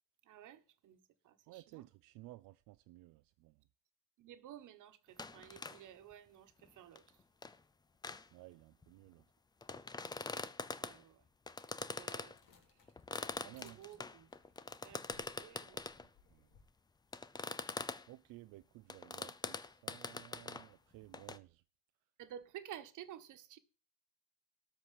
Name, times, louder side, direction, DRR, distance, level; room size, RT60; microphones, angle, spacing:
voice 1, 0.2-1.9 4.2-7.2 10.7-11.2 11.8-12.4 12.7-12.9 13.2-14.3 14.8-15.8 22.2-23.6, right 11 dB, 65° right, 1.4 m, -54 dB
voice 2, 1.5-3.6 8.3-9.2 13.4-13.8 15.7-16.5 18.1-21.6, right 18 dB, 90° right, 0.6 m, -56 dB
sound 1, 5.2-5.8 6.1-6.2 6.6-6.7 6.9-7.6 8.0-8.3 8.8-8.9 9.6-11.0 11.5-12.4 12.9-16.1 17.1-18.1 18.9-20.7 21.1-21.4, left 4 dB, 15° left, 0.4 m, -44 dB
sound 2, 12.3-16.7, left 5 dB, 65° left, 2.7 m, -68 dB
13.0 x 4.7 x 8.3 m
cardioid pair, 145°, 33 cm